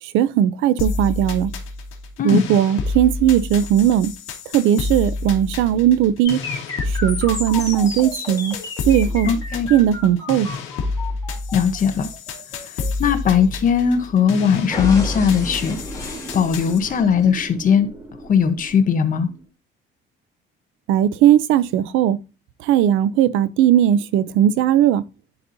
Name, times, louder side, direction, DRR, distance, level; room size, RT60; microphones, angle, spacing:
voice 1, 0.0-1.5 2.2-4.1 4.5-6.4 6.9-8.6 8.9-9.3 9.7-10.5 20.9-22.2 22.6-25.0, right 11 dB, 80° right, 0.6 m, -17 dB
sound 1, 0.8-16.8, left 3 dB, 80° left, 1.6 m, -29 dB
sound 2, 6.2-14.2 14.7-17.3, left 3 dB, 15° left, 2.4 m, -33 dB
voice 2, 9.2-9.7 11.5-12.1 13.0-15.8 16.0-17.9 18.3-19.3, left 7 dB, 45° left, 1.0 m, -19 dB
sound 3, 13.5-19.5, right 2 dB, 15° right, 1.3 m, -39 dB
10.5 x 4.2 x 2.7 m
cardioid pair, 120°, 20 cm